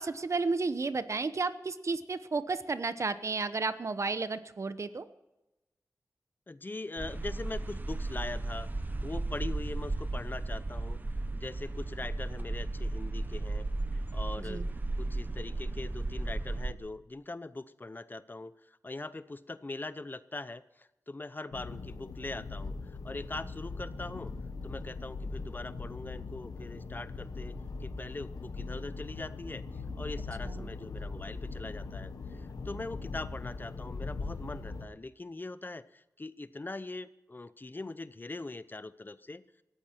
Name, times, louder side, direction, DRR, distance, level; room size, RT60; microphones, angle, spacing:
voice 1, 0.0-5.1 14.4-14.7 30.4-30.7, right 4 dB, 55° right, 13 dB, 1.0 m, -32 dB
voice 2, 6.5-11.0 11.3-13.7 13.9-14.7 15.0-24.3 24.6-39.4, left 2 dB, 35° left, 15 dB, 0.7 m, -42 dB
sound 1, 7.0-16.7, right 2 dB, 30° right, 1.2 m, -35 dB
sound 2, 21.5-34.9, left 3 dB, 90° left, 1.4 m, -40 dB
19.0 x 14.0 x 4.5 m, 0.97 s
cardioid pair, 60°, 6 cm